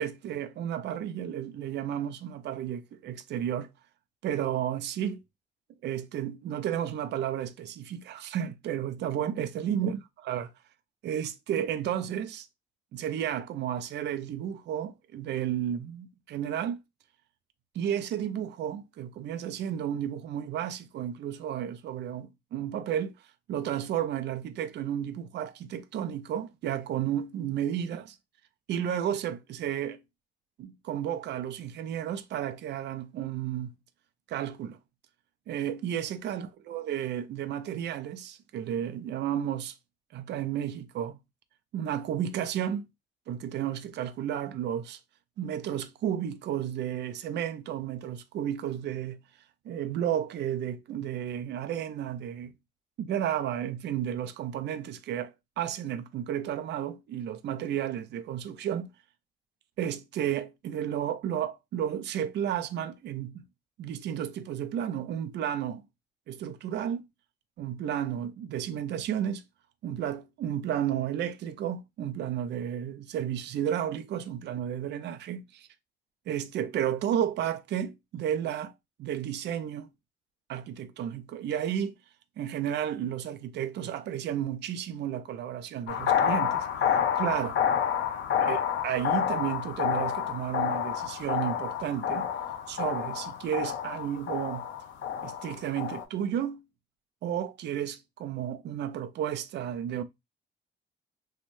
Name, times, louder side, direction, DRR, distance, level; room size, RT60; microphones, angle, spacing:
voice 1, 0.0-3.7 4.2-5.2 5.8-10.0 10.3-10.5 11.0-12.5 12.9-16.8 17.7-23.1 23.5-28.2 28.7-30.0 30.6-33.7 34.3-34.8 35.5-39.7 40.1-41.2 41.7-42.9 43.3-45.0 45.4-49.2 49.7-52.5 53.0-58.9 59.8-63.4 63.8-65.8 66.3-67.0 67.6-69.4 69.8-75.7 76.3-78.7 79.0-79.9 80.5-82.0 82.4-86.7 87.2-87.6 88.4-92.3 92.7-94.6 95.2-96.6 97.2-100.0, right 10 dB, 60° right, 0.4 m, -32 dB
sound 1, 85.9-96.0, left 8 dB, 75° left, 0.6 m, -29 dB
3.0 x 2.1 x 2.6 m
cardioid pair, 90°, 20 cm